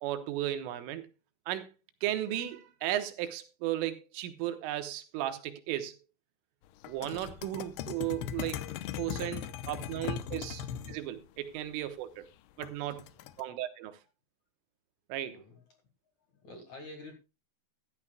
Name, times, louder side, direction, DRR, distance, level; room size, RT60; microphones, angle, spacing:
voice 1, 0.0-1.1 1.5-1.7 2.0-6.0 6.9-8.6 9.0-12.3 12.6-13.1 13.4-14.0 15.1-15.4, right 13 dB, 85° right, 3.7 m, -35 dB
sound 1, 6.8-11.0 12.6-13.4, left 10 dB, 85° left, 2.4 m, -38 dB
voice 2, 15.3-15.8 16.3-17.1, left 2 dB, 55° left, 2.2 m, -48 dB
14.5 x 13.0 x 2.3 m
omnidirectional pair, 5.7 m